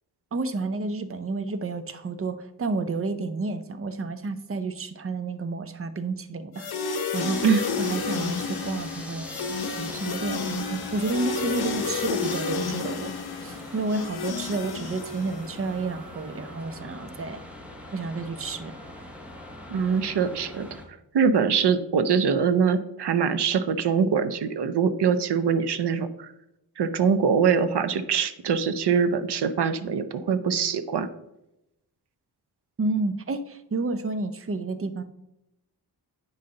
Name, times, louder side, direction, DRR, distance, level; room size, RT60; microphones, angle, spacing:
voice 1, 0.3-7.5 7.8-9.3 9.7-13.1 13.4-17.4 17.9-18.7 32.8-35.0, right 3 dB, 35° right, 10 dB, 0.6 m, -30 dB
sound 1, 6.5-15.7, left 5 dB, 70° left, 0.8 m, -31 dB
sound 2, 7.1-20.9, left 1 dB, 5° right, 1.1 m, -42 dB
voice 2, 19.7-20.7 21.1-26.3 26.8-31.1, right 6 dB, 85° right, 11 dB, 0.7 m, -23 dB
9.0 x 5.5 x 3.8 m, 0.86 s
wide cardioid pair, 115°, 39 cm